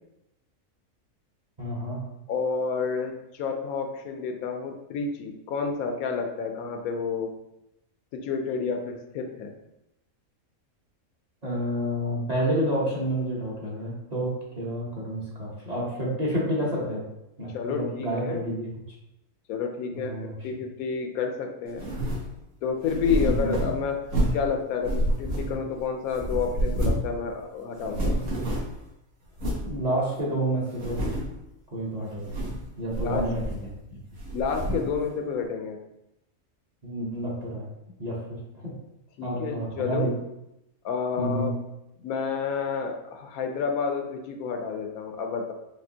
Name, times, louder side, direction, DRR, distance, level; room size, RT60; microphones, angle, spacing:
voice 1, 1.6-2.0 11.4-17.0 17.4-18.7 20.0-20.3 23.2-23.6 29.6-31.1 31.7-32.4 32.8-33.6 33.9-34.0 36.8-37.7 38.0-38.7 39.2-40.1 41.2-41.5, right 1 dB, 35° right, -5 dB, 0.8 m, -29 dB
voice 2, 2.3-7.3 8.1-9.5 17.5-18.4 19.5-20.2 20.4-21.9 22.6-24.0 24.3-28.2 33.0-33.3 34.3-35.8 39.2-40.1 40.8-41.5 42.0-45.5, left 5 dB, 85° left, 5 dB, 1.0 m, -30 dB
sound 1, 21.8-22.3 22.8-24.5 24.8-25.8 26.1-27.2 27.4-27.5 27.8-28.8 29.4-29.7 30.2-30.3 30.7-31.4 32.1-32.7 32.9-33.8 34.2-35.0, right 1 dB, 65° right, 1.4 m, -28 dB
5.2 x 2.8 x 2.7 m, 0.87 s
omnidirectional pair, 1.5 m